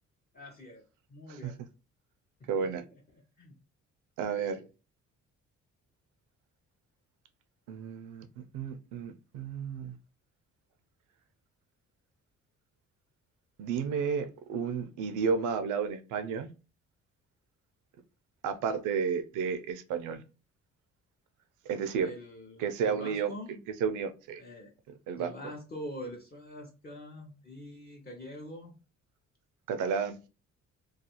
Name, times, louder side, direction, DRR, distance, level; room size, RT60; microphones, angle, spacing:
voice 1, 0.3-0.8 1.1-1.6 2.5-3.0 3.4-3.6 4.2-4.6 22.0-23.6 24.4-24.7 25.2-28.7, left 1 dB, 30° left, 0.6 m, -45 dB
voice 2, 2.5-2.8 4.2-4.6 7.7-8.3 8.5-9.9 13.6-16.5 18.4-20.2 21.7-22.1 22.6-23.3 23.8-24.4 25.1-25.3 29.7-30.2, right 6 dB, 85° right, 0.5 m, -32 dB
2.3 x 2.3 x 2.9 m
cardioid pair, 90°, 30 cm